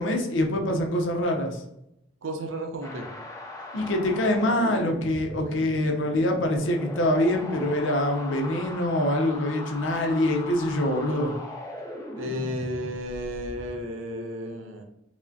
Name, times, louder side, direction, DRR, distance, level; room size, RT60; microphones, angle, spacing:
voice 1, 0.0-1.6 3.7-11.3, left 1 dB, 70° left, 3 dB, 0.6 m, -25 dB
voice 2, 2.2-3.0 12.2-14.8, equal, 80° right, 4 dB, 0.6 m, -33 dB
sound 1, 2.8-13.8, left 1 dB, 15° left, 0.5 m, -39 dB
4.8 x 2.1 x 2.6 m, 0.82 s
head